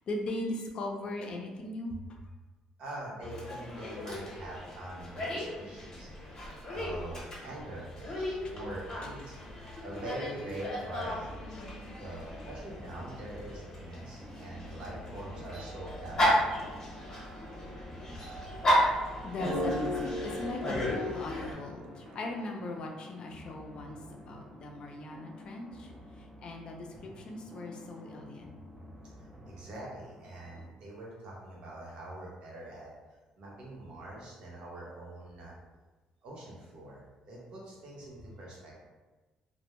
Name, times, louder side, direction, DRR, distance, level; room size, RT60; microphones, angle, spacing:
voice 1, 0.0-2.0 11.6-11.9 18.1-25.9 26.2-28.5, left 2 dB, 45° left, 2 dB, 0.4 m, -39 dB
voice 2, 2.8-9.4 9.8-11.3 12.0-16.7 20.3-20.6 29.2-32.9 33.4-35.6 36.2-38.7, right 1 dB, 55° right, -4 dB, 0.8 m, -44 dB
Dog, 3.2-21.5, equal, 30° left, 0.8 m, -35 dB
sound 1, 11.3-30.6, left 1 dB, 20° right, 0.4 m, -51 dB
sound 2, 19.4-22.7, left 1 dB, 85° right, 0.7 m, -36 dB
2.1 x 2.1 x 2.9 m, 1.2 s
cardioid pair, 130°, 2 cm